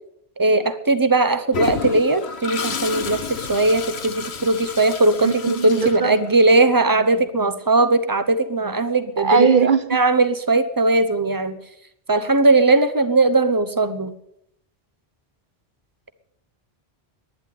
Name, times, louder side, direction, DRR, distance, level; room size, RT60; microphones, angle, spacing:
voice 1, 0.4-9.5 9.9-11.6 12.1-14.1, right 2 dB, 20° right, 0.9 m, -19 dB
Toilet flush, 1.5-6.6, left 5 dB, 80° left, 1.3 m, -30 dB
voice 2, 5.2-6.2 9.2-10.0, right 6 dB, 55° right, 0.9 m, -19 dB
11.5 x 10.5 x 8.5 m
omnidirectional pair, 1.1 m